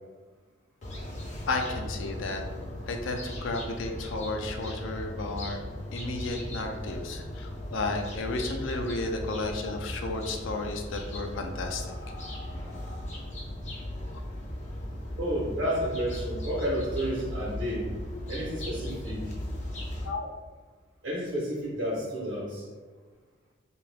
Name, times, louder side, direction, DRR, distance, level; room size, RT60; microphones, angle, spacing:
sound 1, 0.8-20.1, left 1 dB, 35° left, 0.5 m, -37 dB
voice 1, 1.5-2.4 2.9-5.6 5.9-11.9 20.0-20.3, left 2 dB, 85° left, 3 dB, 0.4 m, -33 dB
voice 2, 15.2-17.9 18.3-19.4 21.0-22.6, equal, 70° right, -6 dB, 1.0 m, -31 dB
2.7 x 2.4 x 3.3 m, 1.4 s
head